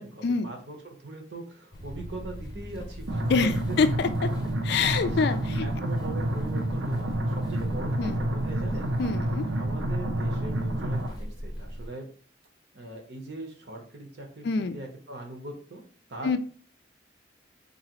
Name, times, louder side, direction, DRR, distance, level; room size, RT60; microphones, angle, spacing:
voice 1, 0.0-3.3 3.7-3.8 5.0-5.3 5.6-8.9 9.5-12.1 12.7-15.8 16.1-16.4, right 2 dB, 60° right, 3 dB, 0.9 m, -41 dB
sound 1, 1.7-11.9, equal, 20° left, 0.7 m, -39 dB
sound 2, 3.1-11.1, right 1 dB, 90° right, 0.6 m, -29 dB
voice 2, 3.3-4.3 4.6-5.7 8.0-8.2 9.0-9.5 14.4-14.8 16.2-16.4, left 4 dB, 55° left, 10 dB, 0.3 m, -26 dB
4.0 x 2.8 x 2.9 m, 0.43 s
head